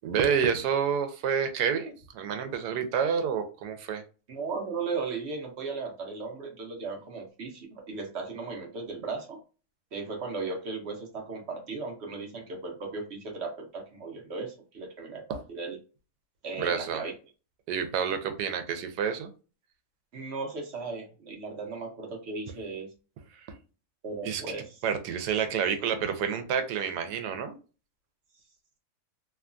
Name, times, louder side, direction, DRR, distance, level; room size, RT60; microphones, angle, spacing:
voice 1, 0.0-4.0 16.6-17.0 17.7-19.3 24.2-24.4 24.8-27.6, right 7 dB, 90° right, 8 dB, 1.2 m, -28 dB
voice 2, 4.3-9.4 9.9-15.8 16.4-17.1 20.1-22.9 24.0-24.8, right 4 dB, 55° right, 1 dB, 0.8 m, -36 dB
3.0 x 2.2 x 2.4 m, 0.34 s
omnidirectional pair, 1.7 m